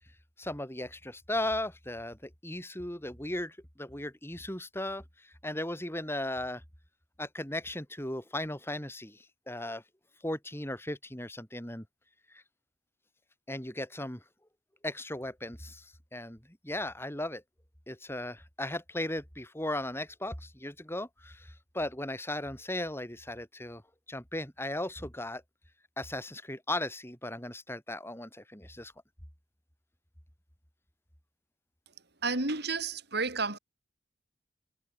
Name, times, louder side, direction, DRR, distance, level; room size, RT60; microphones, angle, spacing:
voice 1, 0.4-6.6 7.2-9.8 10.2-11.8 12.3-12.4 13.5-14.2 14.8-17.4 17.9-23.8 24.1-25.4 26.0-28.9, left 1 dB, 15° left, 7.9 m, -37 dB
voice 2, 32.2-33.6, right 3 dB, 60° right, 4.8 m, -31 dB
head